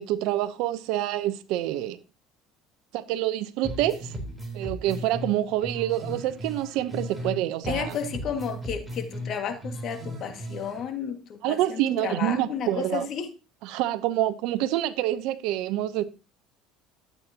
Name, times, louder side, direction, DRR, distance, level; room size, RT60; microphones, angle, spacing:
voice 1, 0.0-2.0 2.9-4.1 4.5-8.0 11.4-13.1 13.6-16.0, right 13 dB, 70° right, 0.7 m, -27 dB
sound 1, 3.6-7.4 7.6-10.8, equal, 5° right, 3.7 m, -36 dB
voice 2, 7.7-13.3, left 7 dB, 50° left, 1.9 m, -32 dB
13.0 x 8.3 x 2.9 m
supercardioid pair, 100°, 0 cm